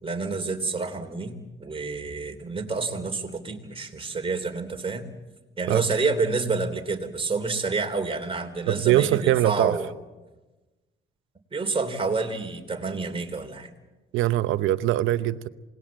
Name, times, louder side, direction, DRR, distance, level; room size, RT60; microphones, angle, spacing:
voice 1, 0.0-5.0 5.6-9.9 11.5-13.7, right 4 dB, 25° right, 4 dB, 3.4 m, -28 dB
voice 2, 8.7-9.8 14.1-15.5, right 14 dB, 90° right, 14 dB, 0.9 m, -22 dB
27.5 x 19.5 x 7.7 m, 1.2 s
cardioid pair, 90°, 20 cm